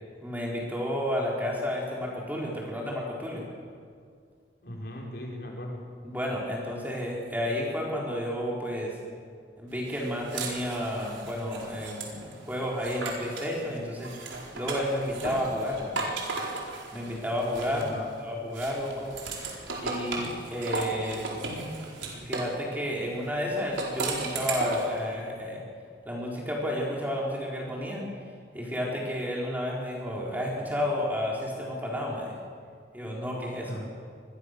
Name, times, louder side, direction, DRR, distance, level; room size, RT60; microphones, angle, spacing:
voice 1, 0.2-3.4 6.0-9.0 9.6-14.1 14.5-15.9 16.9-19.1 19.8-21.3 22.1-25.6 26.0-28.0 28.5-32.4 32.9-33.7, equal, 10° right, -3 dB, 4.2 m, -31 dB
voice 2, 4.6-5.8 17.7-18.1 33.6-33.9, equal, 55° left, -1 dB, 5.4 m, -38 dB
sound 1, 9.9-13.5 14.0-18.1 18.5-22.6 23.6-25.0, right 3 dB, 85° right, 4.6 m, -35 dB
26.0 x 21.0 x 6.7 m, 2.2 s
head